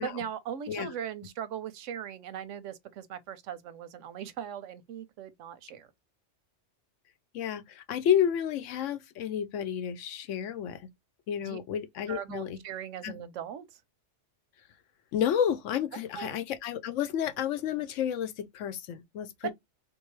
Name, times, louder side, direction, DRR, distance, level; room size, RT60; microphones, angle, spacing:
voice 1, 0.0-5.9 11.4-11.6 12.1-13.6 15.9-16.4 19.4-19.5, right 9 dB, 90° right, 1.0 m, -39 dB
voice 2, 7.3-10.9 11.3-12.6 13.0-13.2 15.1-19.5, left 9 dB, 90° left, 1.0 m, -31 dB
3.8 x 2.7 x 3.0 m
omnidirectional pair, 1.2 m